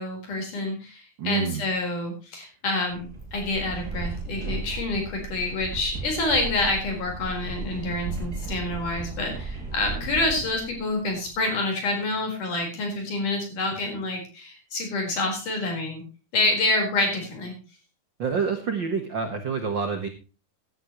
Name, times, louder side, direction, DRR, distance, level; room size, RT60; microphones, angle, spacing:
voice 1, 0.0-16.0 16.3-17.6, left 2 dB, 55° left, 3 dB, 5.8 m, -27 dB
voice 2, 1.2-1.6 18.2-20.1, right 5 dB, 75° right, 6 dB, 1.0 m, -27 dB
sound 1, 2.9-11.4, right 3 dB, 25° right, 5.9 m, -35 dB
16.5 x 11.0 x 3.1 m, 0.33 s
omnidirectional pair, 4.4 m